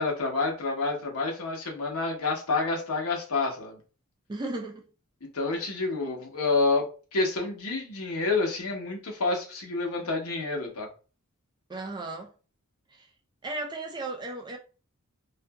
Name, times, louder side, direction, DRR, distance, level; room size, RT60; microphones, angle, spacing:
voice 1, 0.0-3.8 5.3-10.9, left 3 dB, 75° left, 0.8 m, -28 dB
voice 2, 4.3-4.8 11.7-12.3 12.9-13.1 13.4-14.6, right 2 dB, 20° right, 0.4 m, -35 dB
2.7 x 2.5 x 2.2 m
head